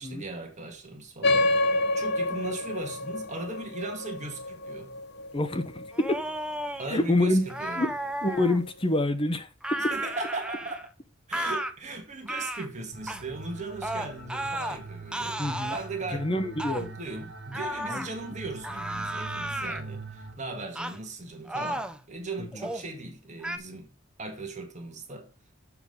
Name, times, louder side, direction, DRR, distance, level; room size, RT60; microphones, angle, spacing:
voice 1, 0.0-4.9 6.8-7.8 9.8-10.9 11.3-15.4 15.7-16.3 16.8-23.9 24.2-25.3, right 3 dB, 35° right, 1.9 m, -38 dB
sound 1, 1.2-6.2, left 2 dB, 55° left, 0.7 m, -28 dB
voice 2, 5.3-6.2 6.9-7.4 7.8-7.9 8.2-9.9 15.4-15.8 16.1-17.0 17.9-18.1 19.5-19.7 22.4-22.7, left 1 dB, 25° left, 1.0 m, -27 dB
sound 2, 5.9-6.9 7.5-8.6 9.6-10.9 11.3-11.7 12.3-12.7 13.1-13.2 13.8-14.8 15.1-15.9 16.6-16.8 17.5-18.1 18.6-19.8 20.7-21.0 21.4-22.0 22.5-22.9 23.4-23.6, right 1 dB, 5° right, 0.6 m, -33 dB
sound 3, 12.9-20.4, right 3 dB, 60° right, 2.2 m, -43 dB
7.2 x 5.8 x 5.4 m
head